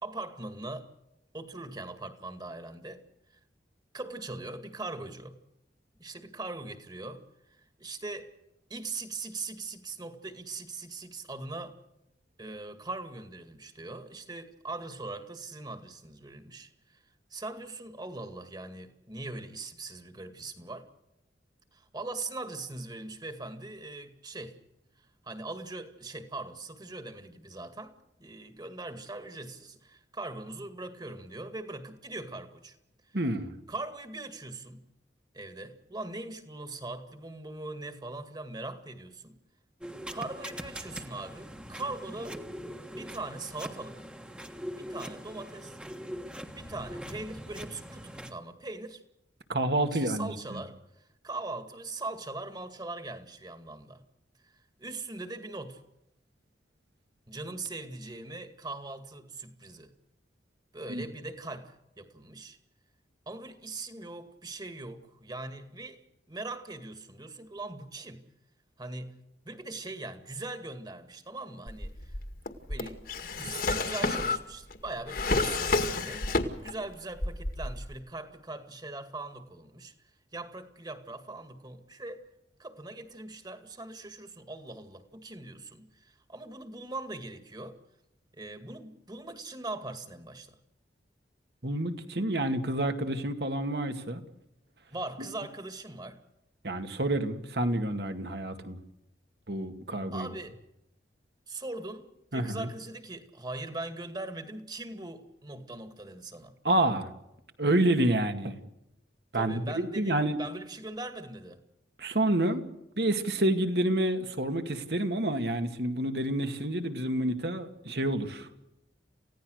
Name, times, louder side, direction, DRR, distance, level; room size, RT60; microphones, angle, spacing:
voice 1, 0.0-0.9 1.3-3.0 3.9-5.4 6.0-7.2 7.6-8.3 8.7-11.8 12.4-17.0 17.3-20.9 21.7-24.6 25.2-32.8 33.7-34.8 35.3-39.4 40.1-42.4 42.9-44.0 44.8-45.8 46.6-49.0 49.9-50.8 51.2-54.0 54.4-54.5 54.8-55.8 57.3-59.9 60.7-62.6 63.3-66.0 66.3-68.2 68.8-72.1 72.7-73.0 73.4-76.3 76.6-79.9 80.3-82.2 82.6-87.8 88.3-90.6 94.9-96.2 100.1-100.6 101.5-106.5 109.3-111.6, right 2 dB, 25° right, 2.1 m, -41 dB
voice 2, 33.1-33.5 49.5-50.6 60.9-61.1 91.6-94.2 96.6-98.8 99.5-100.3 102.3-102.7 106.6-107.1 107.6-108.6 109.3-110.4 112.0-112.7 113.0-118.5, right 1 dB, 65° right, 2.3 m, -28 dB
sound 1, 39.8-48.3, equal, 5° right, 1.5 m, -42 dB
Drawer open or close, 71.7-76.9 77.2-78.0, left 3 dB, 55° left, 2.1 m, -30 dB
28.5 x 16.5 x 6.5 m
head